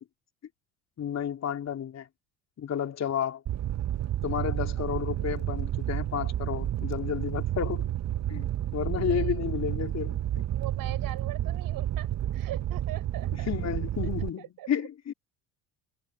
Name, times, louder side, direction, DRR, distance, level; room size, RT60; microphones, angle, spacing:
voice 1, 1.0-2.1 2.6-3.4 4.2-7.9 8.3-10.4 13.3-15.1, left 9 dB, 40° left, 3.5 m, -32 dB
Fire, 3.5-14.3, right 12 dB, 45° right, 1.1 m, -31 dB
voice 2, 10.5-13.5 14.4-14.9, right 14 dB, 60° right, 7.4 m, -41 dB
supercardioid pair, 90°, 38 cm